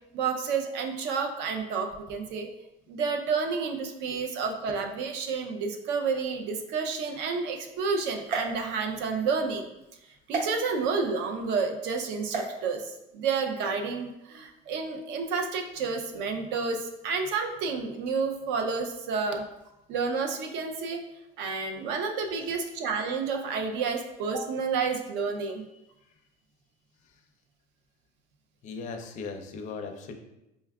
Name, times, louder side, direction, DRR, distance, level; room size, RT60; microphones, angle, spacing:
voice 1, 0.1-2.5 2.9-9.6 10.3-19.4 19.9-21.0 21.4-25.6, right 5 dB, 65° right, 4 dB, 0.5 m, -30 dB
sound 1, 8.2-9.3 10.3-10.5 12.3-12.5, right 4 dB, 40° right, 1.0 m, -33 dB
voice 2, 28.6-30.1, left 4 dB, 40° left, 4 dB, 0.4 m, -38 dB
5.2 x 2.3 x 2.3 m, 0.91 s
cardioid pair, 170°, 20 cm